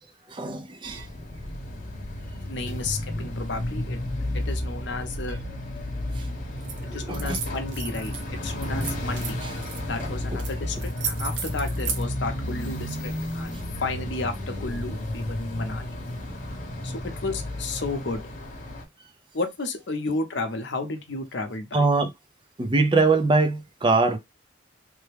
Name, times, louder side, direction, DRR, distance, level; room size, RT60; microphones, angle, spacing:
voice 1, 0.3-1.1 6.2-6.3 6.9-7.4 9.4-9.5 21.7-22.1 22.6-24.2, right 3 dB, 25° right, 0.5 m, -22 dB
sound 1, 0.8-18.8, left 1 dB, 40° left, 1.0 m, -32 dB
voice 2, 1.5-1.8 2.4-4.0 4.3-5.4 6.9-9.4 9.8-16.0 16.3-18.2 19.3-21.9, left 3 dB, 65° left, 0.7 m, -33 dB
sound 2, 6.6-6.8 7.1-8.2 8.6-9.8 10.4-10.5 10.8-12.0, right 6 dB, 70° right, 0.8 m, -33 dB
3.3 x 2.2 x 3.3 m
head